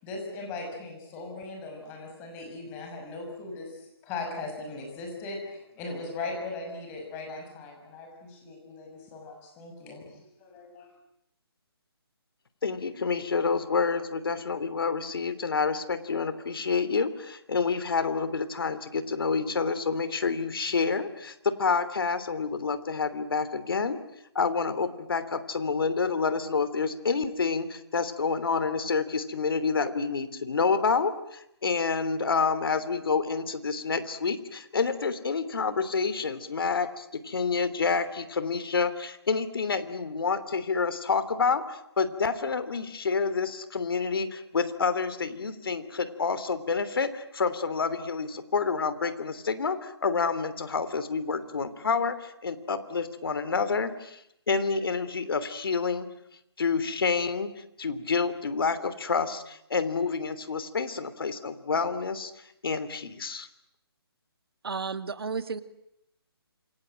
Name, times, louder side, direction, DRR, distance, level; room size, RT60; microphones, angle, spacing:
voice 1, 0.0-10.9, left 3 dB, 15° left, 2 dB, 6.3 m, -39 dB
voice 2, 12.6-24.0 24.3-54.2 54.5-56.1 56.6-57.5 57.8-62.3 62.6-63.5, left 5 dB, 60° left, 13 dB, 3.0 m, -28 dB
voice 3, 64.6-65.6, right 5 dB, 70° right, 12 dB, 2.1 m, -32 dB
27.5 x 24.0 x 9.0 m, 0.78 s
hypercardioid pair, 165°, 13 cm